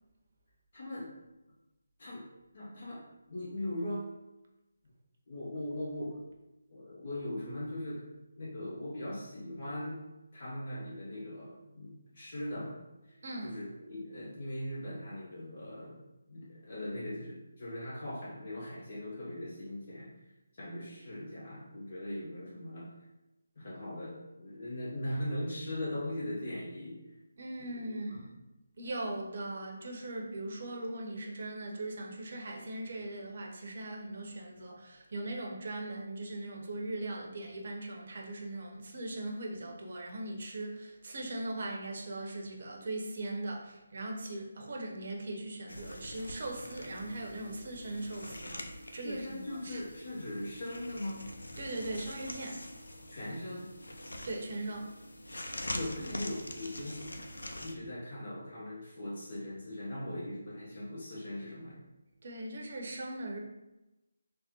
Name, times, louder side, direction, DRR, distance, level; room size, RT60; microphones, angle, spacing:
voice 1, 0.7-1.1 2.0-2.3 2.5-4.1 5.3-6.2 6.7-8.1 8.4-10.0 10.3-12.8 13.1-16.0 16.3-20.1 20.5-22.9 23.6-27.0 27.6-28.3 49.0-51.3 53.1-53.8 55.7-57.2 57.5-61.8, left 1 dB, 50° left, -7 dB, 0.7 m, -40 dB
voice 2, 13.2-13.6 27.4-28.3 28.8-49.8 51.6-52.6 54.2-54.9 62.2-63.4, right 1 dB, 55° right, 0 dB, 0.6 m, -39 dB
sound 1, 45.7-57.7, left 1 dB, 85° left, 0.4 m, -44 dB
3.5 x 2.1 x 2.8 m, 0.99 s
figure-of-eight pair, 155°, 0 cm